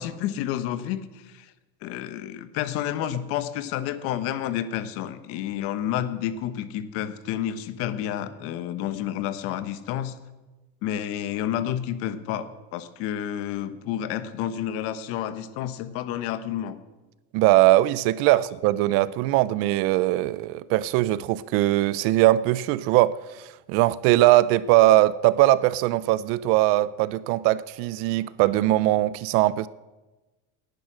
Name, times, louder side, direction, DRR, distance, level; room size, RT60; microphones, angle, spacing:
voice 1, 0.0-1.5 1.8-10.2 10.8-16.8 18.3-18.4, left 11 dB, 50° left, 1.2 m, -30 dB
voice 2, 17.3-29.7, right 16 dB, 50° right, 0.5 m, -21 dB
18.5 x 10.5 x 6.2 m
cardioid pair, 160°, 29 cm